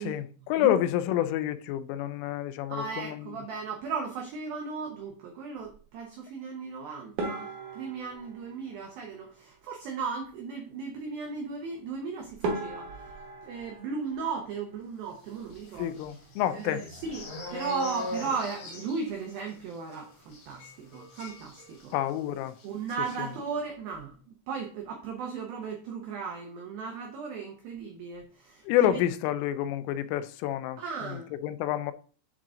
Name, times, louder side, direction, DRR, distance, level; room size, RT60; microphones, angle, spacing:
voice 1, 0.0-3.4 15.8-16.8 21.9-22.6 28.7-31.9, left 12 dB, 90° left, 3.2 m, -29 dB
voice 2, 2.7-7.5 7.8-12.9 13.4-16.0 16.5-22.0 22.6-24.2 24.5-29.0 30.8-31.3, right 5 dB, 90° right, 2.0 m, -36 dB
sound 1, 7.2-9.6 11.9-12.0 12.4-15.2 15.5-16.2 16.5-16.7 17.0-17.1 17.8-18.1, right 3 dB, 65° right, 1.9 m, -38 dB
sound 2, 15.5-22.2 22.5-22.7 22.9-23.2, left 1 dB, 60° left, 1.6 m, -41 dB
10.0 x 3.7 x 3.8 m
omnidirectional pair, 5.6 m